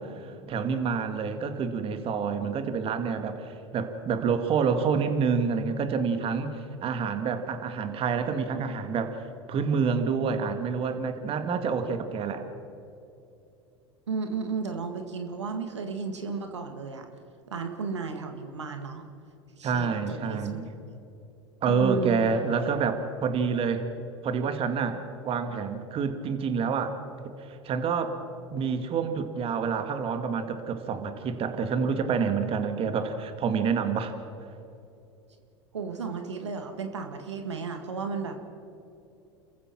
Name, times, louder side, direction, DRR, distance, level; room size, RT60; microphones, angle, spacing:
voice 1, 0.0-9.2 9.5-12.4 19.6-20.7 21.6-23.8 24.2-27.0 27.4-28.1 28.5-34.1, right 5 dB, 40° right, 8 dB, 2.1 m, -28 dB
voice 2, 14.1-17.1 17.5-19.0 19.6-20.6 21.7-22.2 35.7-38.3, right 5 dB, 90° right, 5 dB, 1.8 m, -33 dB
29.5 x 15.0 x 6.1 m, 2.7 s
hypercardioid pair, 85°, 14 cm